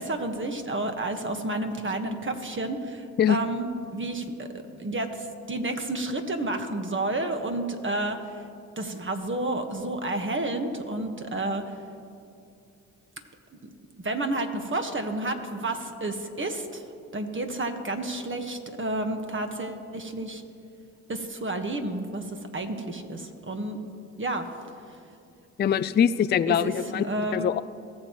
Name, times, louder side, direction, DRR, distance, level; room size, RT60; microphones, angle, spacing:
voice 1, 0.0-4.5 4.8-8.3 8.8-11.6 14.0-16.8 17.1-20.4 21.1-23.8 24.2-24.5 26.5-27.5, right 2 dB, 30° right, 6 dB, 1.5 m, -30 dB
voice 2, 25.6-27.6, left 8 dB, 25° left, 14 dB, 0.4 m, -23 dB
18.5 x 7.7 x 3.1 m, 2.5 s
hypercardioid pair, 45°, 39 cm